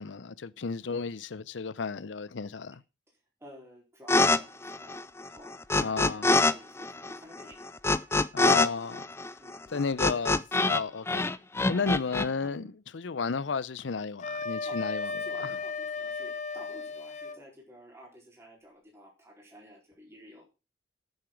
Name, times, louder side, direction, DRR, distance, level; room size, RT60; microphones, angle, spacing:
voice 1, 0.0-2.8 5.8-6.3 8.3-9.0 9.7-11.3 11.7-15.1 15.4-15.6, left 5 dB, 75° left, 0.6 m, -33 dB
voice 2, 3.4-7.7 9.4-9.7 11.6-11.9 12.4-12.7 14.7-14.8 15.0-20.4, equal, 15° right, 4.1 m, -51 dB
sound 1, 4.1-4.4 4.6-6.5 6.8-10.8 11.1-12.3, left 2 dB, 15° left, 0.4 m, -25 dB
Wind instrument woodwind instrument, 14.2-17.4, left 4 dB, 40° left, 1.0 m, -35 dB
9.0 x 8.1 x 5.9 m
head